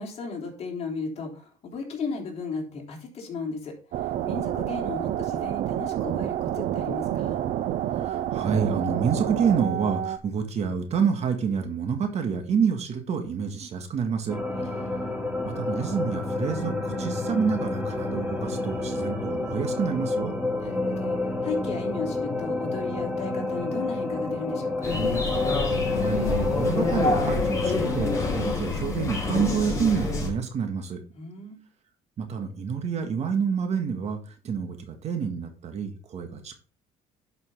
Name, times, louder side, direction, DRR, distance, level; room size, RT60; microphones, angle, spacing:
voice 1, 0.0-3.7 4.0-7.4 14.6-15.0 20.6-24.9 31.1-31.6, left 4 dB, 45° left, 0 dB, 3.5 m, -35 dB
sound 1, 3.9-10.2, right 11 dB, 65° right, 0.6 m, -28 dB
voice 2, 7.9-14.4 15.4-20.4 25.5-31.0 32.2-34.2 34.4-36.6, right 6 dB, 45° right, 6 dB, 1.8 m, -28 dB
sound 2, 14.3-28.6, left 2 dB, 10° right, 3.4 m, -29 dB
sound 3, 24.8-30.3, left 3 dB, 20° left, 4.7 m, -27 dB
11.5 x 5.7 x 3.8 m, 0.38 s
cardioid pair, 115°, 15 cm